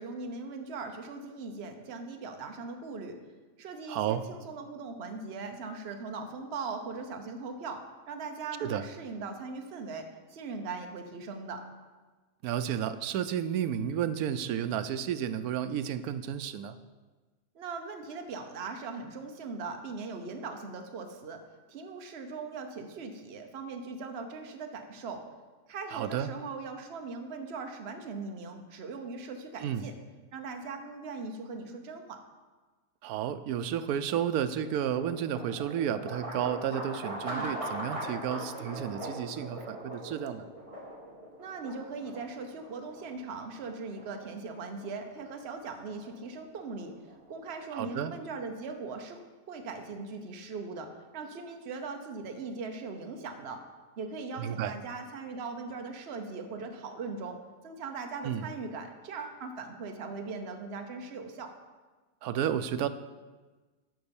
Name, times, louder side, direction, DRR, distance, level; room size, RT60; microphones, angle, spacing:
voice 1, 0.0-3.2 3.6-7.8 8.1-11.6 17.5-21.4 21.7-25.2 25.7-29.9 30.3-32.2 37.3-37.6 41.4-46.9 47.3-49.2 49.5-53.6 54.0-57.4 57.6-61.5, right 4 dB, 50° right, 4 dB, 1.1 m, -40 dB
voice 2, 3.9-4.2 8.6-8.8 12.4-16.8 25.9-26.3 29.6-29.9 33.0-40.5 47.7-48.1 54.4-54.7 58.2-58.5 62.2-62.9, right 9 dB, 85° right, 12 dB, 1.1 m, -32 dB
sound 1, 34.1-47.8, right 1 dB, 20° right, 2.1 m, -41 dB
9.6 x 5.5 x 7.0 m, 1.3 s
omnidirectional pair, 1.6 m